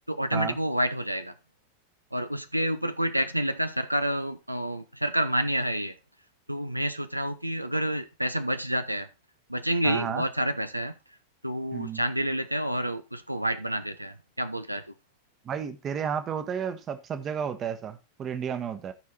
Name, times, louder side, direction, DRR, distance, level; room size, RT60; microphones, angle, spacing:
voice 1, 0.1-1.3 2.1-6.0 6.5-9.1 9.5-10.9 11.4-14.9, right 1 dB, 90° right, 0.6 m, -29 dB
voice 2, 9.8-10.2 11.7-12.0 15.4-18.9, right 7 dB, 25° right, 1.1 m, -32 dB
13.5 x 4.8 x 4.1 m
figure-of-eight pair, 90°, 0 cm